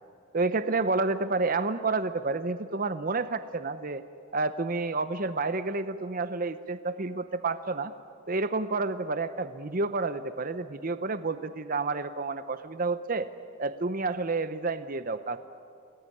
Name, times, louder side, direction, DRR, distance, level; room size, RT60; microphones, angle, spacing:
voice 1, 0.3-4.0 4.3-7.9 8.3-13.3 13.6-15.4, right 3 dB, 40° right, 11 dB, 0.8 m, -30 dB
28.5 x 19.5 x 9.8 m, 2.5 s
head